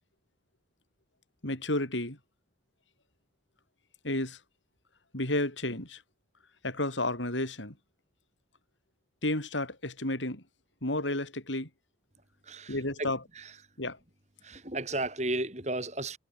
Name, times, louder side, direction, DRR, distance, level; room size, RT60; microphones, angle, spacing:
voice 1, 1.4-2.2 4.0-4.4 5.1-6.0 6.6-7.8 9.2-10.4 10.8-11.7 12.7-13.2 13.8-14.0, left 1 dB, 90° left, 7.7 m, -31 dB
voice 2, 12.5-13.1 13.3-13.5 14.4-16.2, right 2 dB, 35° right, 5.2 m, -34 dB
head